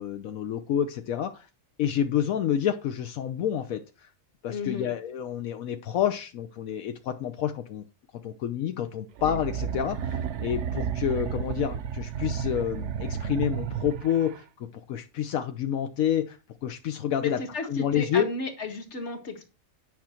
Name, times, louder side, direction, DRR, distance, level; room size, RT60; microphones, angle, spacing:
voice 1, 0.0-1.5 1.8-4.1 4.4-7.8 8.2-18.3, left 9 dB, 80° left, 7 dB, 1.1 m, -29 dB
voice 2, 4.5-4.9 17.2-19.4, left 3 dB, 55° left, 5 dB, 1.8 m, -34 dB
sound 1, 9.2-14.4, right 8 dB, 65° right, 0.9 m, -32 dB
9.6 x 5.9 x 4.4 m, 0.32 s
omnidirectional pair, 1.4 m